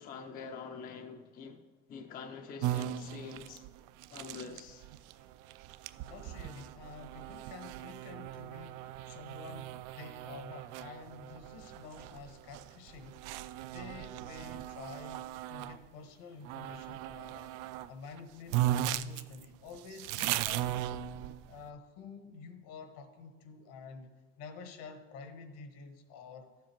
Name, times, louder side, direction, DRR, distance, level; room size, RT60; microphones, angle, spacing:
voice 1, 0.0-1.6 1.9-3.6 4.1-4.9, left 5 dB, 25° left, 0.5 m, -45 dB
sound 1, 2.6-15.8 16.4-17.9 18.2-18.3 18.5-21.6, right 13 dB, 65° right, 0.5 m, -38 dB
voice 2, 6.0-13.2 13.7-17.6 17.9-20.8 21.5-26.5, left 5 dB, 70° left, 1.3 m, -49 dB
12.0 x 7.5 x 4.5 m
cardioid pair, 165°, 34 cm